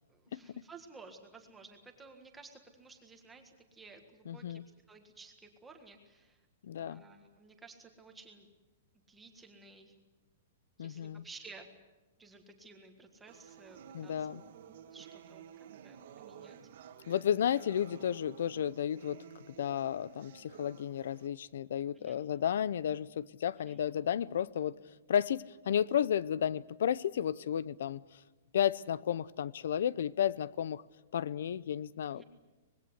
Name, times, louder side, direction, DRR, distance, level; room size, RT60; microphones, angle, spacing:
voice 1, 0.1-4.6 4.9-6.4 6.7-8.5 9.1-9.9 10.8-11.7 12.2-14.4 14.9-15.4 15.8-16.6 21.9-22.2 23.6-23.8 32.1-32.2, right 4 dB, 5° right, 1.7 m, -54 dB
voice 2, 4.3-4.6 6.6-7.0 10.8-11.2 13.9-14.4 17.1-19.2 19.6-24.7 25.1-28.0 28.5-30.8 31.1-32.2, left 9 dB, 60° left, 0.7 m, -32 dB
sound 1, 13.3-21.3, right 9 dB, 50° right, 1.7 m, -53 dB
25.5 x 20.5 x 8.1 m
hypercardioid pair, 175°, 0 cm